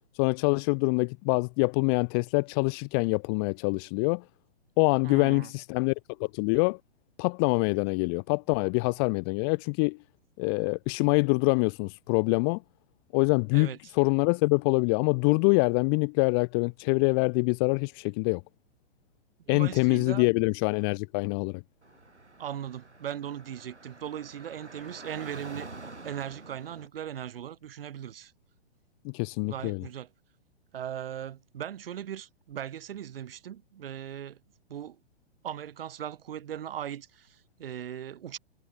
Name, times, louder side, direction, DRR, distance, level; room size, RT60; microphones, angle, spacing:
voice 1, 0.2-4.2 4.8-5.9 6.2-6.8 7.2-10.0 10.4-12.6 13.1-18.4 19.5-21.6 29.0-29.8, left 37 dB, 20° left, 0.6 m, -25 dB
voice 2, 5.0-5.5 13.5-13.8 19.5-20.3 22.4-28.3 29.4-30.1 30.7-34.4 34.7-35.0 35.4-38.4, right 10 dB, 55° right, 7.6 m, -38 dB
Car / Traffic noise roadway noise, 21.8-26.9, right 2 dB, 85° right, 7.7 m, -47 dB
figure-of-eight pair, 120°, 33 cm